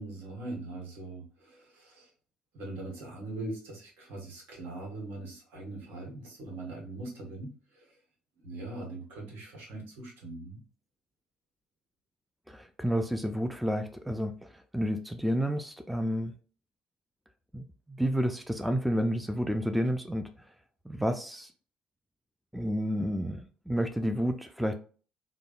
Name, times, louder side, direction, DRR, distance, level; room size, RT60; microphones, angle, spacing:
voice 1, 0.0-2.1 2.5-8.0 8.4-10.6, right 2 dB, 65° right, 0 dB, 1.2 m, -41 dB
voice 2, 12.5-16.3 17.5-20.3 20.9-21.5 22.5-24.8, equal, ahead, 7 dB, 0.3 m, -30 dB
3.3 x 2.1 x 2.4 m, 0.40 s
hypercardioid pair, 55°, 4 cm